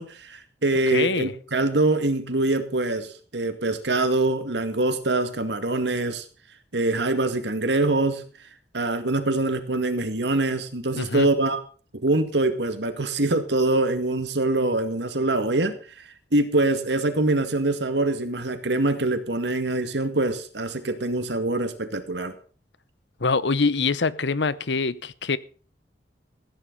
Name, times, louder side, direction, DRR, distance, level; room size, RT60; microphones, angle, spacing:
voice 1, 0.0-6.2 6.7-8.2 8.7-11.6 12.0-15.8 16.3-22.4, right 2 dB, 80° right, 2.0 m, -24 dB
voice 2, 0.9-1.3 11.0-11.3 23.2-25.4, left 4 dB, 85° left, 0.8 m, -24 dB
15.5 x 10.0 x 5.4 m
head